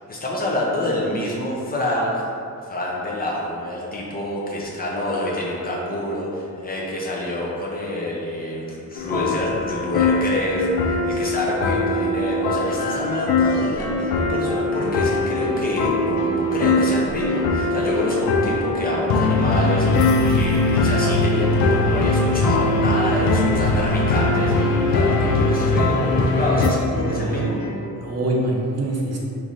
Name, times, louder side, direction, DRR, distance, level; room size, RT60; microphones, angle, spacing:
voice 1, 0.0-2.3 2.6-24.5 24.9-27.6, left 1 dB, 25° left, -4 dB, 0.5 m, -27 dB
sound 1, 9.0-26.7, left 2 dB, 85° left, 0.5 m, -21 dB
sound 2, 12.7-28.0, left 1 dB, 70° left, 0.9 m, -33 dB
voice 2, 26.9-27.5 27.9-29.2, right 1 dB, 45° right, -3 dB, 0.7 m, -25 dB
5.3 x 3.1 x 2.5 m, 2.5 s
wide cardioid pair, 160°, 35 cm